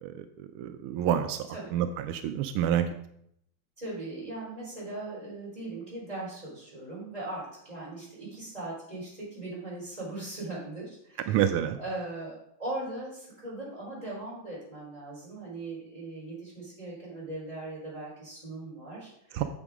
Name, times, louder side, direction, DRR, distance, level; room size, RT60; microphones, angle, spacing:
voice 1, 0.0-2.9 11.3-11.8 19.3-19.4, right 10 dB, 85° right, 9 dB, 1.5 m, -28 dB
voice 2, 3.8-11.4 11.7-19.4, right 2 dB, 15° right, -6 dB, 3.9 m, -39 dB
8.9 x 7.3 x 3.6 m, 0.72 s
omnidirectional pair, 2.3 m